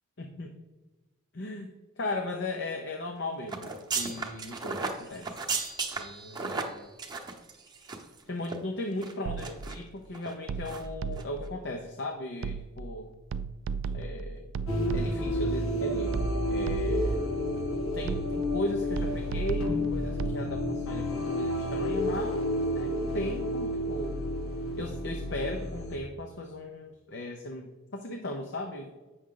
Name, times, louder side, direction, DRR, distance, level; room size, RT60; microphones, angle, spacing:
voice 1, 0.2-0.5 1.3-5.3 6.0-6.8 8.3-13.1 13.9-14.5 14.9-16.1 16.5-17.2 17.9-22.4 22.7-24.2 24.8-28.9, left 1 dB, 60° left, 3 dB, 0.7 m, -37 dB
sound 1, 3.5-8.2 8.4-8.6 9.0-9.8 10.1-10.3 10.7-10.9 11.1-11.2, right 4 dB, 20° right, 0.9 m, -35 dB
sound 2, 9.3-9.8 10.5-11.5 12.4-12.9 13.3-15.4 16.1-17.2 18.1-18.6 19.0-20.5, right 5 dB, 65° right, 0.3 m, -35 dB
sound 3, 14.7-26.0, left 1 dB, 90° left, 1.6 m, -30 dB
8.5 x 6.4 x 3.8 m, 1.2 s
head